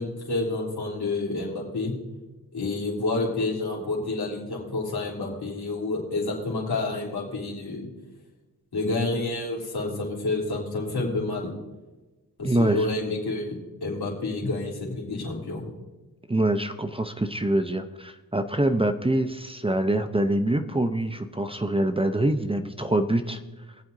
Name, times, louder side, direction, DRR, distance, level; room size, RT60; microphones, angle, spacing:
voice 1, 0.0-1.9 2.5-7.9 8.7-11.5 12.4-15.7, left 2 dB, 80° left, -4 dB, 3.5 m, -29 dB
voice 2, 12.4-12.9 16.3-23.4, right 1 dB, 15° right, 8 dB, 0.7 m, -25 dB
22.5 x 7.8 x 2.7 m, 1.1 s
cardioid pair, 55°, 38 cm